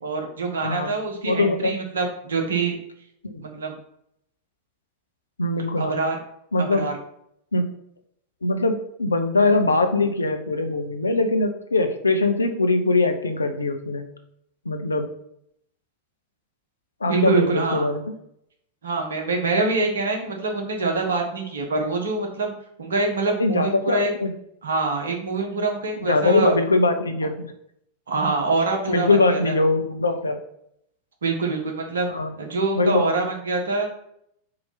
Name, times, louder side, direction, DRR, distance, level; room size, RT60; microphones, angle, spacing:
voice 1, 0.0-2.8 3.4-3.8 5.8-6.2 6.6-6.9 17.1-17.9 18.8-22.5 22.8-24.1 24.6-26.6 28.1-29.6 31.2-32.1 32.4-33.9, right 3 dB, 65° right, 2 dB, 1.4 m, -25 dB
voice 2, 1.2-1.8 3.2-3.4 5.4-6.0 6.5-6.9 7.5-7.7 8.4-14.0 14.6-15.1 17.0-18.0 23.4-24.3 26.0-27.5 28.9-30.4 32.1-32.3 32.7-33.1, left 2 dB, 75° left, 6 dB, 0.8 m, -22 dB
4.9 x 4.3 x 5.8 m, 0.73 s
figure-of-eight pair, 90°, 0 cm